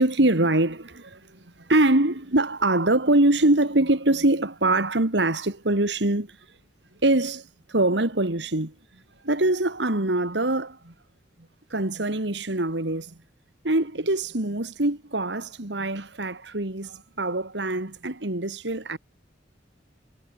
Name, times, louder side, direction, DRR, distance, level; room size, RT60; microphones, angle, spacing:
voice 1, 0.0-6.4 7.0-10.9 11.7-13.2 13.6-19.0, right 2 dB, 70° right, 2.4 m, -24 dB
head